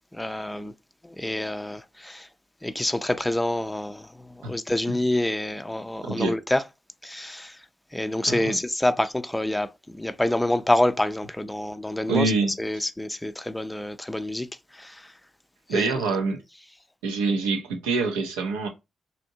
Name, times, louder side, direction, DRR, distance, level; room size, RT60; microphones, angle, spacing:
voice 1, 0.1-0.7 1.0-2.3 2.6-6.6 7.0-7.6 7.9-12.3 12.6-14.5 14.7-15.1 15.7-15.9, left 1 dB, 10° left, 0.4 m, -27 dB
voice 2, 6.0-6.4 8.2-8.6 12.1-12.5 15.7-16.4 17.0-18.7, right 3 dB, 90° right, 0.5 m, -25 dB
2.7 x 2.5 x 2.7 m
hypercardioid pair, 40°, 0 cm